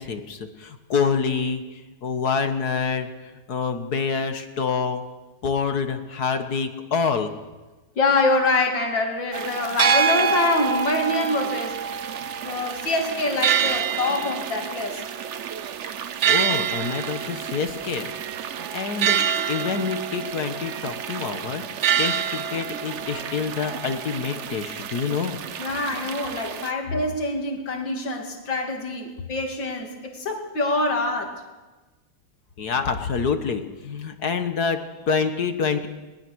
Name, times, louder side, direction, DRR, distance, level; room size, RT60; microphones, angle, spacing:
voice 1, 0.0-5.0 5.4-7.3 16.3-18.1 18.6-19.2 19.5-21.6 22.0-25.4 32.6-35.9, left 5 dB, 55° left, 8 dB, 1.9 m, -27 dB
voice 2, 8.0-11.9 12.4-15.0 25.6-31.4, left 2 dB, 70° left, 2 dB, 3.4 m, -25 dB
sound 1, 9.3-26.7, right 8 dB, 60° right, 0.8 m, -27 dB
21.0 x 21.0 x 6.4 m, 1.2 s
omnidirectional pair, 2.1 m